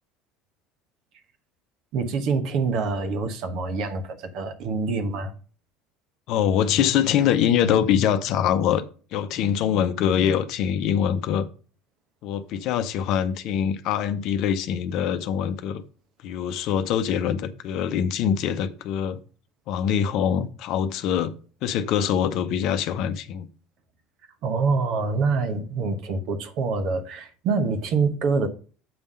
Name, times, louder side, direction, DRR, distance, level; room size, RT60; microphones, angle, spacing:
voice 1, 1.9-5.3 24.4-28.5, right 4 dB, 55° right, 1.1 m, -25 dB
voice 2, 6.3-8.8 9.1-11.5 12.2-15.8 16.2-19.2 19.7-21.3 21.6-23.5, left 9 dB, 55° left, 0.6 m, -24 dB
7.8 x 3.6 x 5.4 m
hypercardioid pair, 70°, 0 cm